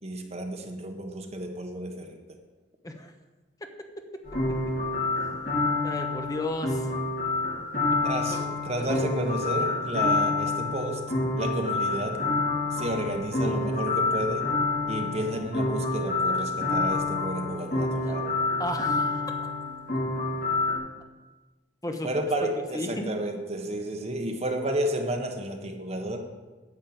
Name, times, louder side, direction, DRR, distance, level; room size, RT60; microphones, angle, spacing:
voice 1, 0.0-2.4 8.0-11.0 11.4-12.3 12.7-14.5 14.9-18.4 22.0-26.2, right 1 dB, 35° right, 3 dB, 1.4 m, -31 dB
sound 1, 4.2-20.8, left 3 dB, 60° left, 4.6 m, -28 dB
voice 2, 5.8-6.9 7.9-8.0 8.3-8.4 8.8-9.0 18.1-18.2 18.6-19.1 21.8-22.1 22.7-23.1, left 1 dB, 20° left, 5 dB, 1.1 m, -33 dB
9.9 x 6.5 x 8.8 m, 1.2 s
head